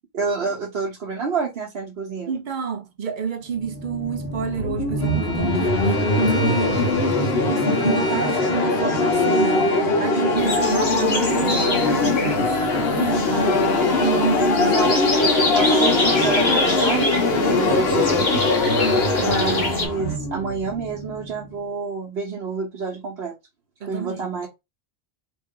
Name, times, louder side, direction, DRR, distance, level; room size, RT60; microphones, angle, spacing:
voice 1, 0.1-2.3 14.7-15.0 15.5-18.4 19.2-23.3 23.8-24.5, right 5 dB, 70° right, 1.1 m, -28 dB
voice 2, 2.3-12.6 12.9-13.7 14.0-14.8 23.8-24.3, right 7 dB, 55° right, 0.7 m, -28 dB
sound 1, 3.6-21.4, left 2 dB, 70° left, 1.2 m, -21 dB
Bowed string instrument, 5.0-9.9, left 2 dB, 30° left, 0.5 m, -34 dB
sound 2, 10.4-19.9, left 2 dB, 45° left, 1.3 m, -27 dB
3.0 x 2.5 x 3.7 m
omnidirectional pair, 1.1 m